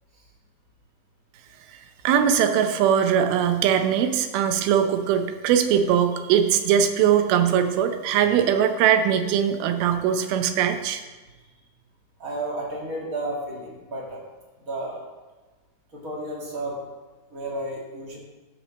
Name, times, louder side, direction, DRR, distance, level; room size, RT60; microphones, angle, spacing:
voice 1, 2.0-11.0, right 8 dB, 85° right, 7 dB, 2.6 m, -21 dB
voice 2, 12.2-14.2 14.6-15.0 15.9-16.8 17.3-18.2, right 1 dB, 35° right, -3 dB, 1.5 m, -32 dB
14.5 x 5.1 x 4.1 m, 1.2 s
omnidirectional pair, 4.3 m